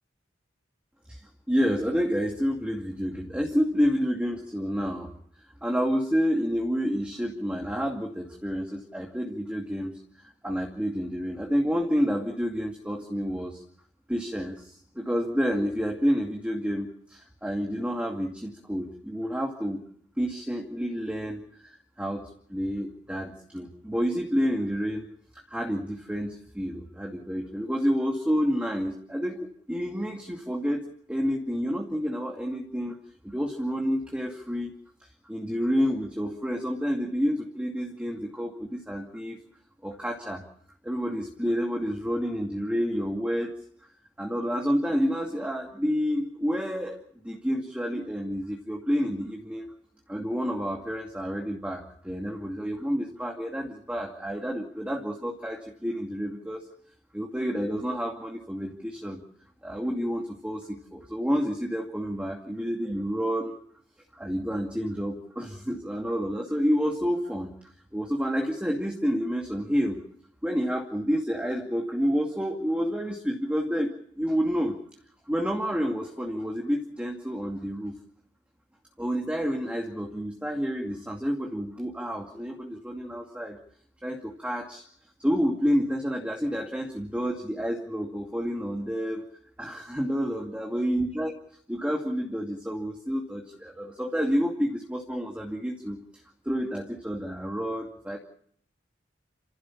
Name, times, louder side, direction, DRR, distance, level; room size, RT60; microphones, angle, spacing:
voice 1, 1.5-5.1 5.6-13.6 14.1-19.8 20.2-25.1 25.3-33.0 33.2-34.7 35.3-39.4 39.8-40.4 40.8-43.5 44.2-47.0 47.2-49.7 50.1-56.7 57.1-59.2 59.6-63.5 64.1-67.5 67.9-70.0 70.4-74.8 75.3-77.9 79.0-83.6 84.0-84.8 85.2-89.3 89.6-91.3 91.7-96.0 96.4-98.2, equal, 5° right, 1 dB, 2.3 m, -29 dB
28.5 x 15.5 x 7.2 m, 0.64 s
head